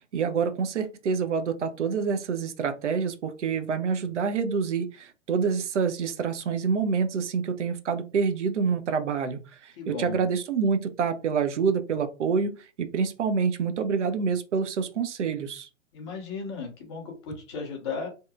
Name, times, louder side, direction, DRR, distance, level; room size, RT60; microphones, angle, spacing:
voice 1, 0.1-15.7, right 6 dB, 60° right, 8 dB, 0.5 m, -27 dB
voice 2, 9.8-10.2 15.9-18.1, left 5 dB, 20° left, 2 dB, 0.5 m, -35 dB
2.7 x 2.2 x 2.3 m, 0.31 s
figure-of-eight pair, 120°, 40 cm